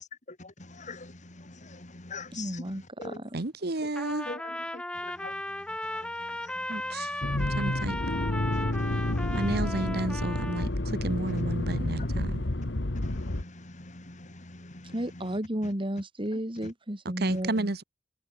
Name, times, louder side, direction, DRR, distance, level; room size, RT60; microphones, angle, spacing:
voice 1, 0.4-3.2 4.3-7.2 8.5-9.7 12.0-12.1 12.9-15.7 16.3-16.7 17.3-17.4, left 3 dB, 45° left, 3.1 m, -45 dB
voice 2, 2.3-3.4 14.9-17.7, right 1 dB, 30° right, 3.2 m, -33 dB
voice 3, 3.3-4.3 6.7-8.0 9.3-12.4 17.2-17.8, right 2 dB, 60° right, 1.4 m, -32 dB
Trumpet, 3.9-10.7, left 1 dB, 5° left, 0.8 m, -36 dB
Accelerating revving vroom, 7.2-13.4, left 1 dB, 70° left, 1.6 m, -30 dB
head